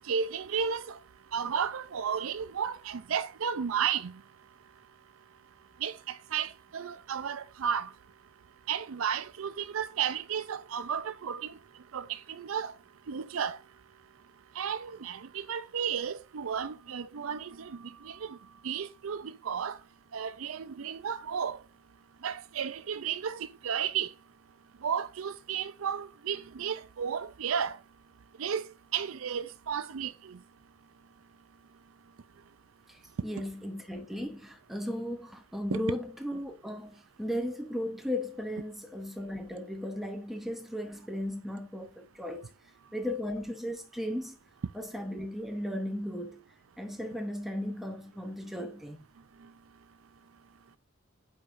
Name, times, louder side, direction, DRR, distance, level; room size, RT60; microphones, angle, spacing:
voice 1, 0.1-1.0 1.3-4.1 5.8-7.9 8.7-11.6 11.9-12.7 13.1-13.6 14.6-18.4 18.6-19.8 20.1-21.6 22.2-24.1 24.8-27.8 28.4-28.7 28.9-30.4 35.7-35.8, right 7 dB, 85° right, 0.5 m, -33 dB
voice 2, 32.9-42.5 42.9-44.4 44.7-46.4 46.8-49.0, left 1 dB, ahead, 0.9 m, -36 dB
8.3 x 4.6 x 2.6 m
head